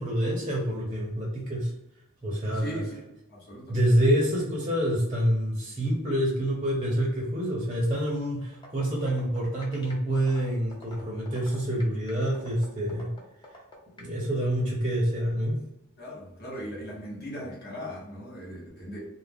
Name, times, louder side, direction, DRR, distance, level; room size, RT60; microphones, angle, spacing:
voice 1, 0.0-1.7 2.2-2.8 3.7-13.1 14.0-15.6, equal, 25° right, -3 dB, 0.6 m, -27 dB
voice 2, 2.5-3.9 16.0-19.0, equal, 50° left, -5 dB, 1.0 m, -39 dB
sound 1, 8.5-14.1, left 2 dB, 20° left, 0.5 m, -47 dB
2.4 x 2.1 x 3.4 m, 0.88 s
head